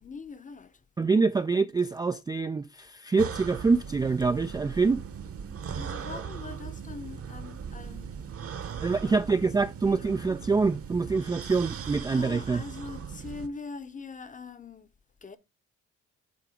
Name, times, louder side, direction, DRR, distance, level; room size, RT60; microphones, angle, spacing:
voice 1, 0.0-0.8 5.7-8.3 8.8-9.2 9.6-10.2 12.1-14.9 15.2-15.4, left 4 dB, 25° left, 0.8 m, -43 dB
voice 2, 1.0-5.0 8.8-12.6, right 4 dB, 15° right, 0.3 m, -25 dB
sound 1, 3.2-13.5, right 7 dB, 50° right, 1.1 m, -39 dB
7.8 x 3.4 x 4.9 m
cardioid pair, 90°, 30 cm